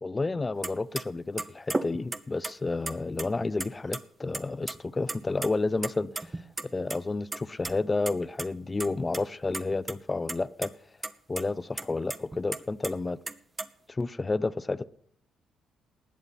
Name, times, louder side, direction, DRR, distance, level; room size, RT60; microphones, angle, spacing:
voice 1, 0.0-6.3 6.6-10.7 11.3-13.2 13.9-14.8, left 3 dB, 25° left, 0.6 m, -30 dB
sound 1, 0.6-0.7 1.0-1.1 1.4-2.5 2.9-3.7 3.9-4.0 4.3-4.8 5.0-5.5 5.8-7.0 7.3-7.7 8.1-8.2 8.4-8.5 8.8-9.2 9.5-10.0 10.3-10.7 11.0-11.1 11.4-11.5 11.8-12.9 13.3-13.7, right 2 dB, 20° right, 1.0 m, -34 dB
19.0 x 7.6 x 5.8 m
cardioid pair, 80°, 0 cm